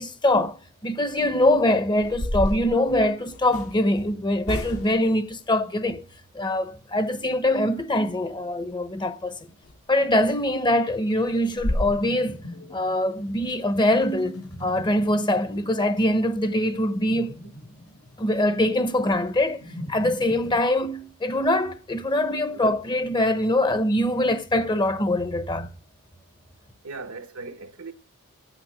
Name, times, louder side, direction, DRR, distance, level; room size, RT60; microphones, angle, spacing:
voice 1, 0.0-6.0 6.3-9.4 9.9-12.4 12.7-17.4 18.2-19.6 19.9-25.7, left 1 dB, 20° left, 0.9 m, -23 dB
sound 1, 1.4-1.5 2.0-3.7 4.4-5.1 9.6-9.8 10.2-10.3 10.7-10.8 11.2-11.3 11.6-11.9, left 1 dB, 85° left, 3.3 m, -29 dB
sound 2, 9.9-20.6, left 1 dB, 70° left, 3.7 m, -43 dB
voice 2, 26.8-27.9, right 3 dB, 70° right, 1.2 m, -39 dB
9.1 x 8.0 x 6.3 m
head